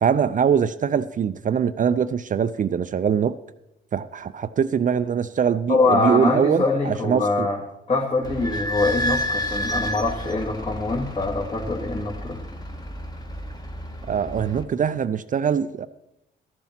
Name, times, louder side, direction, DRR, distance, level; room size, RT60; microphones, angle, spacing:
voice 1, 0.0-3.3 3.9-7.5 14.1-15.9, right 7 dB, 40° right, 12 dB, 0.5 m, -23 dB
voice 2, 5.7-7.6 7.9-12.4, left 3 dB, 35° left, -3 dB, 2.2 m, -23 dB
Idling / Squeak, 8.2-14.6, equal, 20° left, 1.5 m, -30 dB
13.0 x 7.2 x 5.9 m, 0.88 s
cardioid pair, 90°, 20 cm